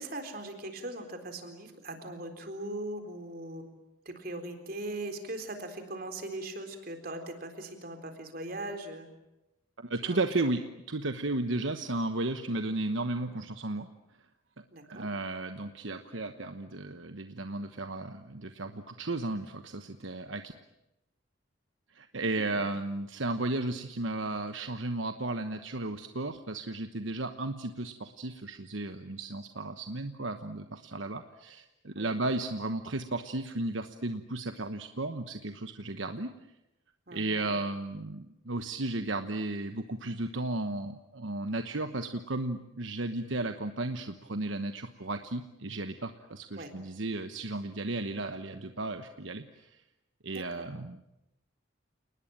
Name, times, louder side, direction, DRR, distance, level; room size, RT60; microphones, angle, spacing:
voice 1, 0.0-3.7 4.1-9.1 10.0-10.2 14.7-15.1 22.1-22.6 31.9-32.1 37.1-37.5 46.6-46.7 50.3-50.7, right 1 dB, 45° right, 6 dB, 4.0 m, -40 dB
voice 2, 9.8-10.6 10.9-13.9 14.9-20.4 21.9-36.3 37.1-49.8 50.2-51.0, right 2 dB, 75° right, 8 dB, 1.2 m, -34 dB
29.5 x 20.0 x 9.0 m, 0.91 s
head